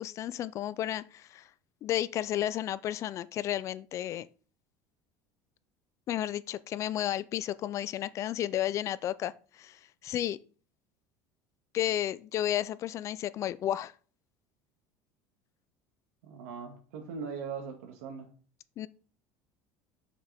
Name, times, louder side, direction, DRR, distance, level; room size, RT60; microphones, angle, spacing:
voice 1, 0.0-1.5 1.8-4.3 6.1-10.4 11.7-13.9 18.8-18.9, left 12 dB, 45° left, 0.4 m, -32 dB
voice 2, 16.2-18.3, right 6 dB, 90° right, 2.1 m, -40 dB
7.0 x 6.5 x 3.5 m
supercardioid pair, 120°, 7 cm